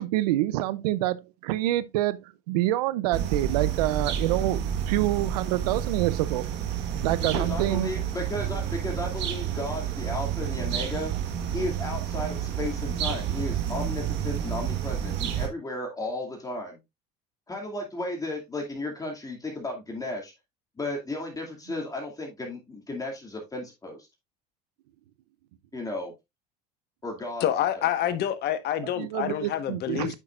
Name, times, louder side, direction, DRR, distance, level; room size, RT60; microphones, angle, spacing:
voice 1, 0.0-6.4 7.0-7.9 28.8-30.2, right 15 dB, 90° right, 0.5 m, -27 dB
sound 1, 3.1-15.5, right 9 dB, 65° right, 1.5 m, -30 dB
voice 2, 7.3-11.1 11.5-16.8 17.5-20.3 20.8-24.1 25.7-26.1 27.0-27.4 27.8-28.1, left 2 dB, 15° left, 2.4 m, -34 dB
voice 3, 27.4-30.2, left 10 dB, 55° left, 1.3 m, -27 dB
9.0 x 5.7 x 2.4 m
supercardioid pair, 90°, 20 cm